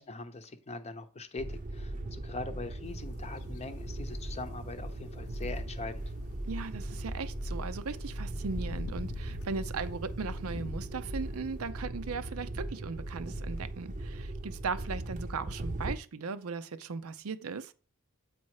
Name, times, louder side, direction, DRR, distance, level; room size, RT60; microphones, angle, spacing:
voice 1, 0.0-6.0, left 3 dB, 30° left, 0.7 m, -42 dB
sound 1, 1.4-16.0, right 1 dB, 35° right, 0.7 m, -39 dB
sound 2, 2.8-11.7, left 2 dB, 65° left, 0.7 m, -46 dB
voice 2, 6.4-17.7, right 4 dB, 70° right, 0.6 m, -38 dB
8.3 x 4.2 x 4.7 m
head